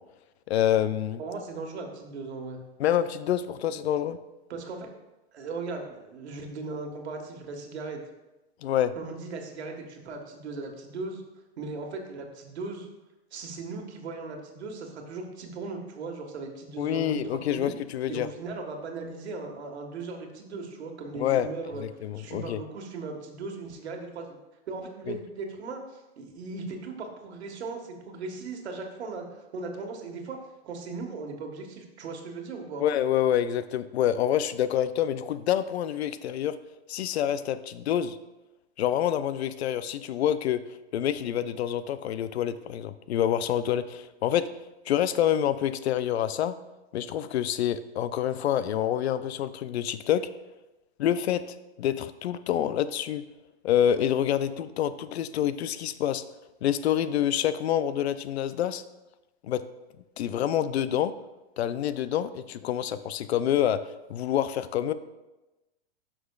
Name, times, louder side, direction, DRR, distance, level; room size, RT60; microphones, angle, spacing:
voice 1, 0.5-1.2 2.8-4.2 8.6-8.9 16.8-18.3 21.1-21.5 21.8-22.6 25.1-25.2 32.8-36.6 36.9-38.2 38.8-40.6 40.9-44.5 44.9-46.6 46.9-50.3 51.0-51.5 51.8-53.2 53.6-56.2 56.6-58.8 59.4-59.6 60.2-61.1 61.6-63.8 64.1-64.9, left 10 dB, 80° left, 13 dB, 0.6 m, -27 dB
voice 2, 1.2-2.6 4.5-4.9 5.3-8.0 9.0-11.2 11.6-12.9 13.3-17.7 18.1-21.9 22.2-24.4 24.7-30.4 30.6-32.8, right 3 dB, 85° right, 3 dB, 1.6 m, -38 dB
11.5 x 6.1 x 2.4 m, 1.0 s
hypercardioid pair, 150°, 32 cm